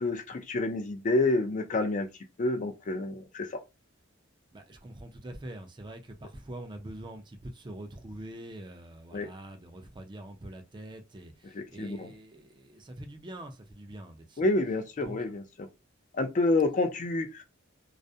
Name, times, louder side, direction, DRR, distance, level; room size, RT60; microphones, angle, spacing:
voice 1, 0.0-2.1 2.4-3.6 9.1-9.3 11.5-12.1 14.4-15.7 16.1-17.4, left 2 dB, 40° left, 0.4 m, -28 dB
voice 2, 4.5-14.4 15.0-15.2, right 1 dB, 25° right, 0.4 m, -44 dB
2.3 x 2.1 x 2.6 m
head